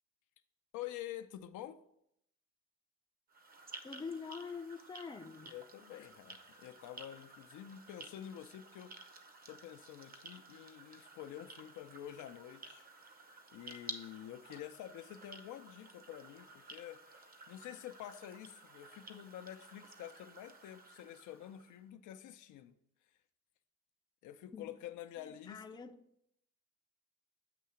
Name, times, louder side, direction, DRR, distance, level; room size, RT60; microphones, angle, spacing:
voice 1, 0.7-1.8 5.4-8.9 9.5-12.9 13.1-13.2 13.5-22.8 24.2-25.8, left 11 dB, 80° left, 0.5 m, -48 dB
sound 1, 3.3-21.8, right 3 dB, 30° right, 0.7 m, -54 dB
voice 2, 3.8-5.5 24.5-24.7 25.2-26.0, left 5 dB, 15° left, 0.5 m, -45 dB
8.3 x 2.8 x 5.6 m
cardioid pair, 90°, 30 cm